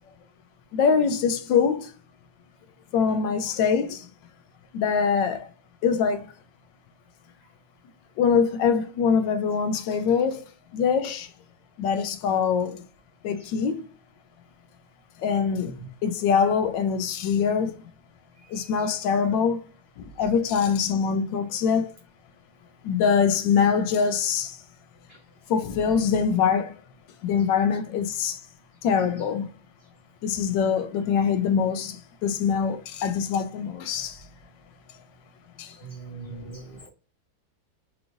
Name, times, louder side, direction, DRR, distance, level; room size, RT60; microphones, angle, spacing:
voice 1, 0.7-1.9 2.9-4.1 4.7-5.5 5.8-6.3 8.2-10.4 10.7-11.3 11.8-12.8 13.2-13.9 15.2-15.8 16.0-17.8 18.5-19.6 20.0-21.9 22.8-24.6 25.5-26.7 27.2-28.4 28.8-29.5 30.2-34.2 35.6-35.8, left 6 dB, 75° left, 1.2 m, -23 dB
voice 2, 18.4-18.9 25.1-25.2 35.8-36.9, right 4 dB, 65° right, 0.5 m, -41 dB
4.8 x 2.5 x 3.0 m
omnidirectional pair, 2.2 m